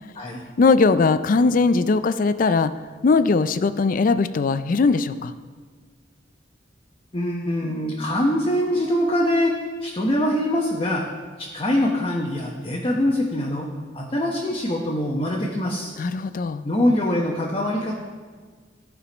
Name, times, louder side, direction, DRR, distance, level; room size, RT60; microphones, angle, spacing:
voice 1, 0.6-2.7 3.0-5.3 16.0-16.6, left 4 dB, 45° left, 13 dB, 0.4 m, -19 dB
voice 2, 7.1-11.0 11.4-13.7 13.9-15.9 16.6-17.9, left 1 dB, 30° left, -2 dB, 0.9 m, -23 dB
14.5 x 5.0 x 5.1 m, 1.5 s
head